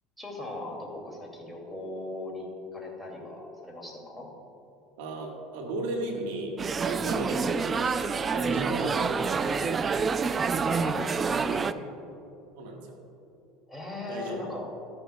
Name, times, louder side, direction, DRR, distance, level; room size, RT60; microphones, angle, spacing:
voice 1, 0.2-2.5 2.7-4.3 8.8-8.9 10.6-11.8 13.7-14.7, left 2 dB, ahead, -1 dB, 2.4 m, -38 dB
voice 2, 5.0-6.5 6.8-9.8 12.6-13.0 14.1-14.7, right 2 dB, 80° right, 2 dB, 1.4 m, -36 dB
sound 1, 6.6-11.7, right 5 dB, 30° right, 0.3 m, -27 dB
13.5 x 10.5 x 2.3 m, 2.8 s
supercardioid pair, 95°, 0 cm